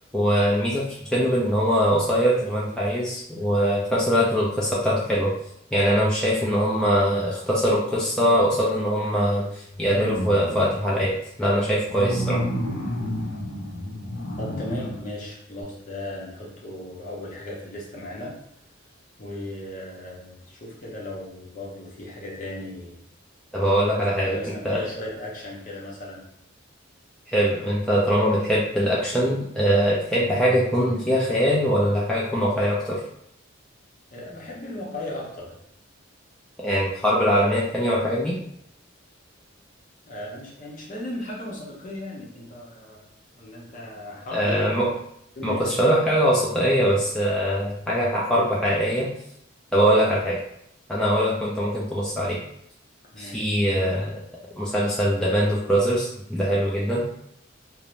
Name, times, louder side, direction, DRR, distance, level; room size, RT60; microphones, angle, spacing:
voice 1, 0.1-0.8 1.1-5.3 5.7-11.1 11.4-12.4 23.5-24.4 24.6-24.8 27.3-33.0 36.6-38.4 44.3-44.9 45.4-49.1 49.7-50.3 50.9-52.4 53.2-54.1 54.6-57.0, equal, 5° left, -7 dB, 0.3 m, -22 dB
sound 1, 9.7-10.9 11.9-15.0 15.6-15.7, equal, 85° left, 0.6 m, -30 dB
voice 2, 14.4-18.4 19.2-23.0 23.9-26.2 34.1-35.6 40.1-43.1 43.4-44.7 45.4-45.8 49.8-50.0 53.1-53.5, left 1 dB, 40° left, -3 dB, 0.7 m, -36 dB
2.5 x 2.0 x 3.0 m, 0.74 s
head